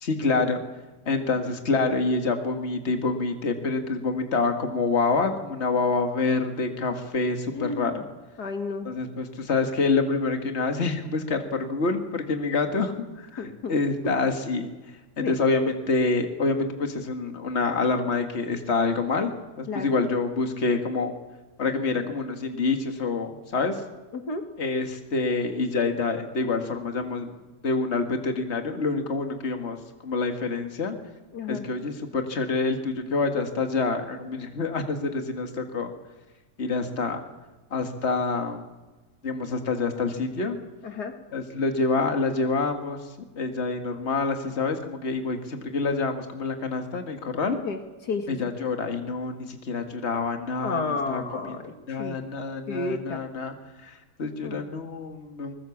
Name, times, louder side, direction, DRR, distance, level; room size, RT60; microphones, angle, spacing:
voice 1, 0.0-0.6 1.1-8.0 8.9-12.9 13.2-14.7 15.2-19.3 19.6-21.1 21.6-23.8 24.6-27.4 27.6-29.8 30.0-31.0 31.5-35.9 36.6-37.2 37.7-38.7 39.2-40.6 41.3-43.0 43.4-47.6 48.3-53.5 53.8-55.5, left 3 dB, 40° left, 5 dB, 2.2 m, -27 dB
voice 2, 7.5-7.9 8.4-8.9 13.4-13.7 15.2-15.4 19.7-19.9 24.1-24.5 31.3-31.6 40.8-41.2 47.6-48.4 50.6-52.2 52.7-53.2 54.4-54.8, left 3 dB, 75° left, 6 dB, 2.5 m, -32 dB
23.5 x 20.5 x 7.3 m, 1.1 s
omnidirectional pair, 1.8 m